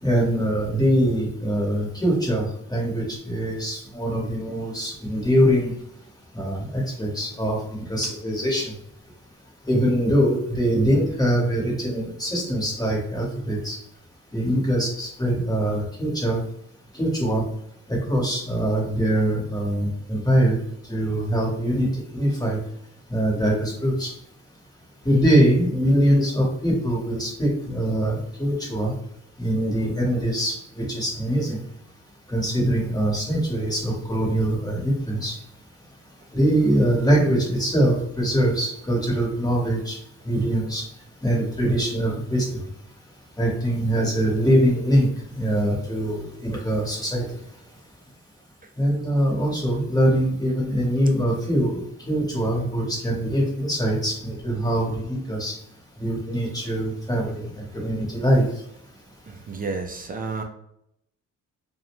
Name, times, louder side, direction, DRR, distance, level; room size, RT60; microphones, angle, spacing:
voice 1, 0.0-2.4 2.7-5.7 6.4-7.6 7.9-8.7 9.7-13.8 14.3-16.4 17.0-17.4 17.9-20.6 20.9-22.6 23.1-24.1 25.0-28.9 29.4-31.6 32.3-35.3 36.3-40.0 40.2-40.8 41.2-42.5 43.4-45.1 45.4-47.2 48.8-51.8 52.1-55.5 56.0-57.4 57.7-58.4, equal, 10° left, -3 dB, 1.1 m, -23 dB
voice 2, 59.3-60.4, right 4 dB, 30° right, 4 dB, 0.4 m, -31 dB
2.4 x 2.1 x 3.0 m, 0.75 s
cardioid pair, 90°, 30 cm